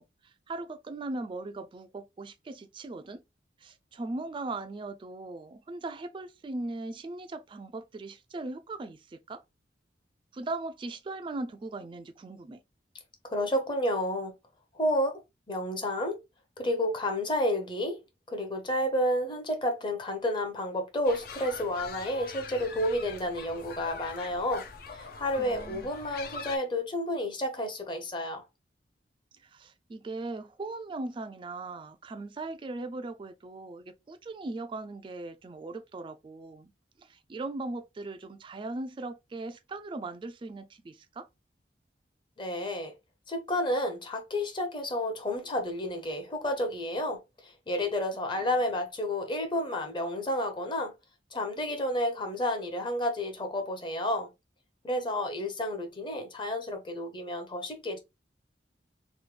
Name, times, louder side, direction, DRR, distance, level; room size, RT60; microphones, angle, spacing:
voice 1, 0.0-3.2 3.6-9.4 10.3-12.6 25.4-25.9 29.4-36.7 37.0-41.3 55.4-55.5, right 2 dB, 30° right, 0.3 m, -39 dB
voice 2, 13.3-14.3 14.7-15.2 15.5-16.2 16.6-18.0 18.3-24.7 24.9-28.4 42.4-42.9 43.3-50.9 51.3-54.3 54.8-58.0, left 1 dB, 25° left, 0.8 m, -31 dB
sound 1, 21.0-26.6, left 4 dB, 55° left, 0.5 m, -43 dB
3.1 x 2.2 x 3.2 m
head